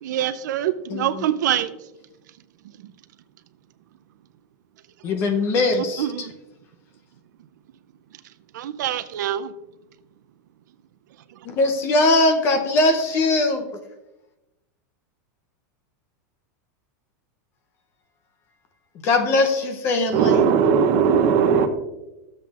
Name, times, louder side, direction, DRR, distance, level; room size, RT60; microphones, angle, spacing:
voice 1, 0.0-1.7 6.0-6.3 8.5-9.5, right 11 dB, 75° right, 11 dB, 0.5 m, -25 dB
voice 2, 0.9-1.2 5.0-6.3 11.5-13.6 19.0-20.5, left 2 dB, 25° left, 7 dB, 0.6 m, -21 dB
voice 3, 20.1-21.7, right 6 dB, 30° right, 6 dB, 0.7 m, -18 dB
13.0 x 7.5 x 2.4 m, 1.0 s
supercardioid pair, 180°, 10 cm